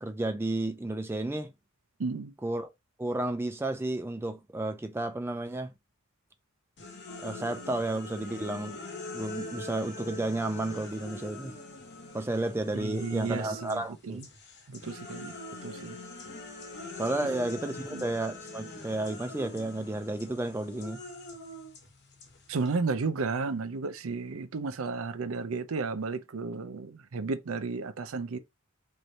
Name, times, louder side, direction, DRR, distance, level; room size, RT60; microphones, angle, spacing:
voice 1, 0.0-1.5 2.4-2.7 3.0-5.7 7.2-8.8 9.1-11.5 12.1-14.2 17.0-21.0, right 2 dB, 10° right, 0.4 m, -32 dB
voice 2, 2.0-2.3 12.7-14.3 14.7-15.4 15.6-16.0 17.9-18.1 22.5-28.4, right 4 dB, 85° right, 0.5 m, -33 dB
sound 1, 6.8-13.9 14.2-22.8, left 2 dB, 55° left, 1.1 m, -43 dB
3.2 x 2.6 x 4.2 m
head